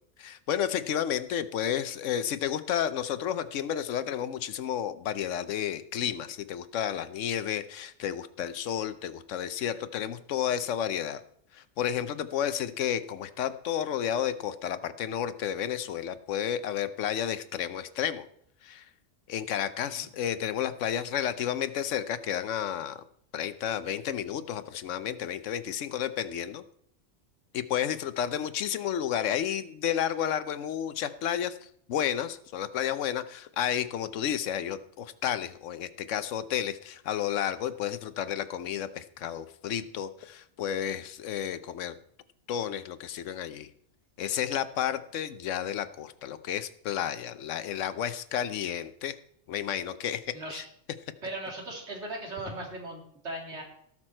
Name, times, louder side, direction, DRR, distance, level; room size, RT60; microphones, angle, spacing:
voice 1, 0.2-11.2 11.5-18.3 18.6-18.8 19.3-23.0 23.3-26.6 27.5-42.0 42.5-43.7 44.2-49.1 49.5-50.2 50.5-50.6, left 9 dB, 80° left, 13 dB, 1.1 m, -31 dB
voice 2, 50.3-50.6 51.2-53.6, right 1 dB, 60° right, 1 dB, 2.8 m, -38 dB
17.5 x 6.1 x 4.4 m, 0.68 s
omnidirectional pair, 1.3 m